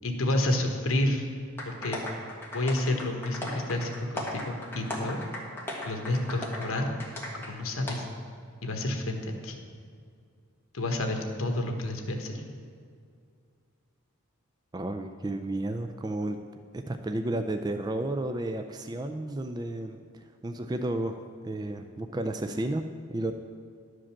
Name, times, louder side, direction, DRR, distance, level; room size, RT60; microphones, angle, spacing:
voice 1, 0.0-1.3 1.7-2.0 2.5-5.2 5.9-6.9 7.5-8.1 8.6-9.6 10.7-12.4, left 1 dB, 75° left, 3 dB, 1.2 m, -29 dB
sound 1, 1.6-7.5 7.9-8.0, left 1 dB, 10° left, 1.5 m, -37 dB
voice 2, 14.7-16.4 16.7-23.3, right 1 dB, 20° right, 6 dB, 0.3 m, -32 dB
11.0 x 5.1 x 7.3 m, 2.2 s
head